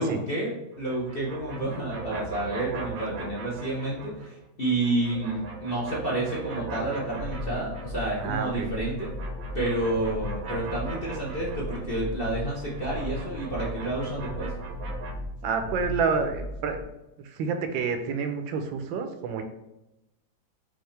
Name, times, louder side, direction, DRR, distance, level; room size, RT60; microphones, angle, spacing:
voice 1, 0.0-9.1 9.5-14.5, right 2 dB, 45° left, -5 dB, 0.7 m, -30 dB
sound 1, 0.7-4.3 4.6-8.3 8.6-15.1, right 5 dB, 60° right, 1.0 m, -40 dB
sound 2, 7.1-16.8, left 1 dB, 70° left, 1.1 m, -37 dB
voice 2, 8.2-8.7 15.4-16.8 17.2-19.4, right 5 dB, 80° right, 6 dB, 1.4 m, -29 dB
5.5 x 2.8 x 3.2 m, 0.92 s
omnidirectional pair, 2.1 m